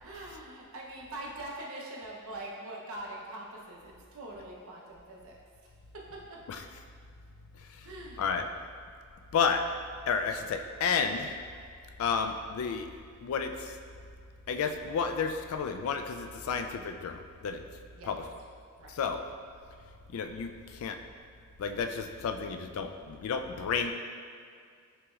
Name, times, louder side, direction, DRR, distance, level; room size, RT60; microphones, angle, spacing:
voice 1, 0.0-5.4 5.9-6.4 7.8-8.3 17.9-18.1 18.8-19.0, right 1 dB, 80° right, -3 dB, 0.7 m, -43 dB
voice 2, 9.3-9.6 10.1-11.3 12.0-12.9 13.2-13.7 14.5-17.6 18.1-18.2 18.9-19.2 20.1-21.0 21.6-23.9, left 6 dB, 80° left, 6 dB, 0.3 m, -31 dB
5.9 x 3.0 x 2.4 m, 2.2 s
head